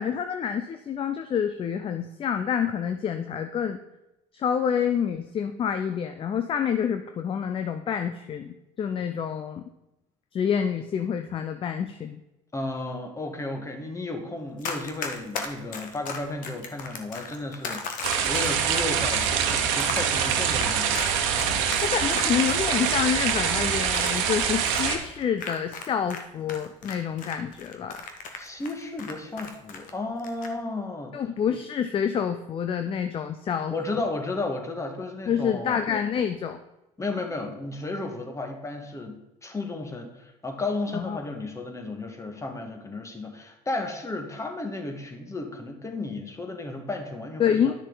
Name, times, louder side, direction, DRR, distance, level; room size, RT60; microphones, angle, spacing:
voice 1, 0.0-3.8 4.3-9.6 10.3-12.2 20.1-20.2 21.8-28.0 31.1-34.0 35.3-36.6 40.9-41.2 47.4-47.7, left 8 dB, 35° left, 8 dB, 0.6 m, -28 dB
voice 2, 12.5-21.0 28.4-31.1 33.7-35.8 37.0-47.7, left 2 dB, 20° left, 4 dB, 1.8 m, -33 dB
Run, 14.6-26.2 26.5-29.9 30.2-30.5, left 5 dB, 55° left, 1.3 m, -36 dB
sound 1, 18.0-25.0, right 8 dB, 80° right, 1.2 m, -25 dB
10.5 x 6.3 x 4.0 m, 0.94 s
hypercardioid pair, 85°, 16 cm